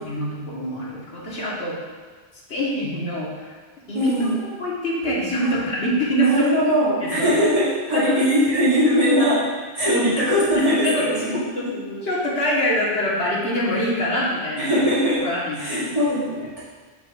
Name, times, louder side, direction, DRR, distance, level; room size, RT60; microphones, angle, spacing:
voice 1, 0.0-1.8 2.5-3.5 3.9-4.1 4.6-6.5 7.0-7.3 7.9-8.2 9.9-10.4 10.8-11.1 11.5-14.8 15.2-15.9, left 1 dB, 85° left, -6 dB, 1.8 m, -25 dB
voice 2, 3.9-4.4 5.4-5.5 6.2-9.5 9.7-11.4 14.6-15.3 15.6-16.6, equal, 30° right, -11 dB, 2.3 m, -20 dB
7.9 x 6.2 x 2.5 m, 1.4 s
omnidirectional pair, 1.1 m